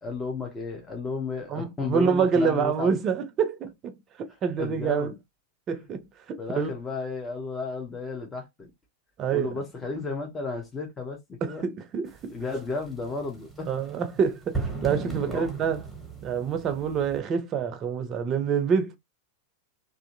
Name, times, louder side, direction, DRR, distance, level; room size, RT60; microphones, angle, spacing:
voice 1, 0.0-3.0 4.6-5.2 6.4-8.7 9.3-11.6 12.3-13.7 15.2-15.5, left 4 dB, 15° left, 0.8 m, -33 dB
voice 2, 1.5-5.1 5.7-6.7 9.2-9.5 11.4-12.3 13.7-15.8 16.2-19.0, right 6 dB, 30° right, 0.6 m, -27 dB
sound 1, 12.1-17.2, right 3 dB, ahead, 1.1 m, -37 dB
2.6 x 2.5 x 2.5 m
figure-of-eight pair, 90°, 0 cm